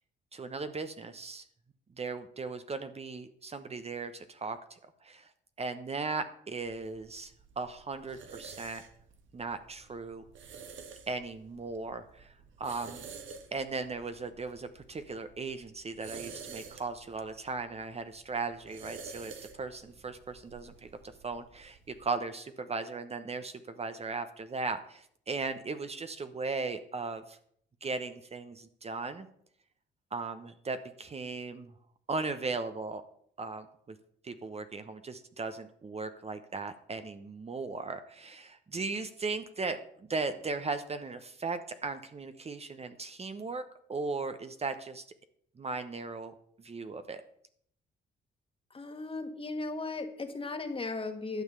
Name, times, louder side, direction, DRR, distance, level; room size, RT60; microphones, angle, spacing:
voice 1, 0.3-1.4 2.0-5.3 5.6-8.8 9.3-10.2 11.1-13.0 13.5-20.9 21.2-27.4 27.8-29.3 30.1-31.7 32.1-33.0 33.4-33.7 34.2-43.6 43.9-45.0 45.6-47.2, right 4 dB, 30° right, 9 dB, 1.0 m, -37 dB
sound 1, 6.6-22.1, right 6 dB, 75° right, 1.6 m, -50 dB
voice 2, 48.7-51.4, left 3 dB, 25° left, 7 dB, 1.7 m, -36 dB
11.5 x 7.2 x 6.9 m, 0.66 s
cardioid pair, 90°, 20 cm